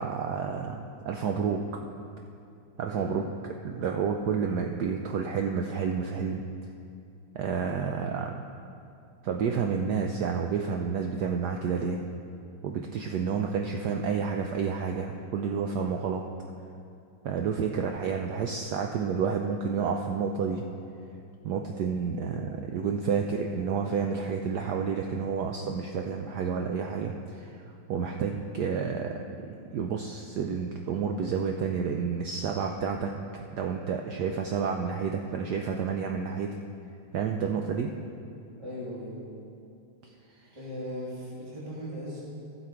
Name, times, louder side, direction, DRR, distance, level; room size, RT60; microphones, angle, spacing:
voice 1, 0.0-1.6 2.8-6.5 7.3-8.4 9.2-12.0 12.6-16.2 17.2-20.6 21.4-36.5 37.1-37.9, right 6 dB, 90° right, 3 dB, 0.8 m, -30 dB
voice 2, 2.8-3.2 38.6-39.2 40.5-42.2, equal, 15° right, -7 dB, 2.4 m, -38 dB
15.5 x 6.8 x 4.5 m, 2.6 s
omnidirectional pair, 2.4 m